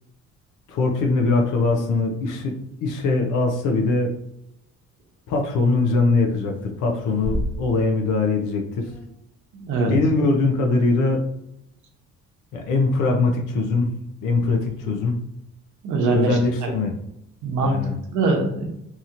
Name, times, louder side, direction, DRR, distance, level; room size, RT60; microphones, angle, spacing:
voice 1, 0.7-2.5 2.8-4.1 5.3-8.9 9.9-11.2 12.5-13.9 14.2-15.2 16.1-16.9 17.6-17.9, left 3 dB, 85° left, 2 dB, 0.6 m, -21 dB
sound 1, 2.1-2.2 3.0-3.1 3.8-3.9 5.4-5.9 6.2-6.7 6.9-8.2 8.5-8.6 8.8-9.1, equal, 5° left, 0.5 m, -31 dB
voice 2, 9.5-9.9 15.8-16.7 17.4-18.7, right 3 dB, 85° right, 2 dB, 0.8 m, -23 dB
2.8 x 2.8 x 2.5 m, 0.79 s
cardioid pair, 90°, 30 cm